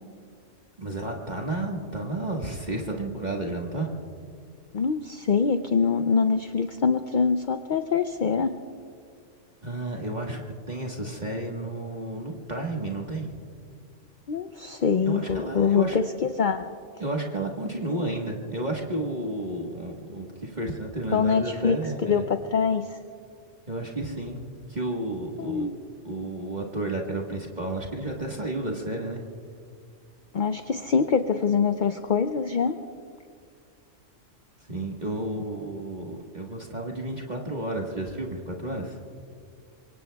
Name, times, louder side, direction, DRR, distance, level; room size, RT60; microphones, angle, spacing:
voice 1, 0.8-3.9 9.6-13.3 15.0-16.0 17.0-22.3 23.7-24.4 24.7-25.7 26.0-29.2 34.7-39.0, right 2 dB, 35° right, -1 dB, 1.5 m, -32 dB
voice 2, 4.7-8.5 14.3-16.7 17.8-18.0 21.1-23.0 25.4-25.8 30.3-32.8, left 5 dB, 55° left, 8 dB, 0.6 m, -24 dB
25.5 x 23.5 x 2.3 m, 2.2 s
omnidirectional pair, 1.3 m